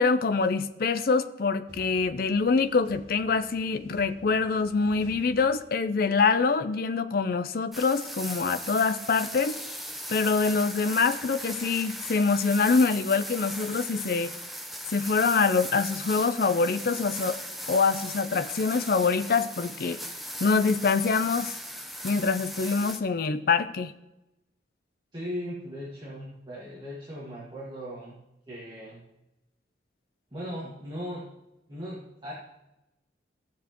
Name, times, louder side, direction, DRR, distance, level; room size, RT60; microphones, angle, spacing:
voice 1, 0.0-9.6 10.1-14.3 14.9-17.4 17.7-20.0 20.4-21.6 22.0-23.9, left 4 dB, 50° left, 11 dB, 0.5 m, -25 dB
sound 1, 1.7-6.1, equal, 65° right, 2.5 m, -52 dB
sound 2, 7.7-23.0, equal, ahead, 0.7 m, -38 dB
voice 2, 25.1-28.2 28.5-29.0 30.3-31.2 31.7-32.3, equal, 25° right, -7 dB, 1.8 m, -38 dB
15.0 x 7.1 x 3.0 m, 0.92 s
head